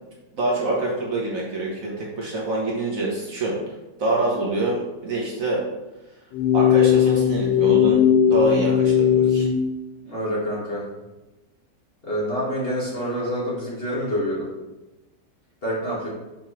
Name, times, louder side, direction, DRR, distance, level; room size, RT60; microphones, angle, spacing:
voice 1, 0.3-3.6 4.0-5.6 6.5-9.5, right 2 dB, 55° right, -4 dB, 1.4 m, -25 dB
sound 1, 6.3-9.6, left 9 dB, 80° left, 1.7 m, -18 dB
voice 2, 10.0-10.9 12.0-14.5 15.6-16.1, equal, 35° left, -7 dB, 1.9 m, -27 dB
6.1 x 5.2 x 3.1 m, 1.1 s
omnidirectional pair, 1.9 m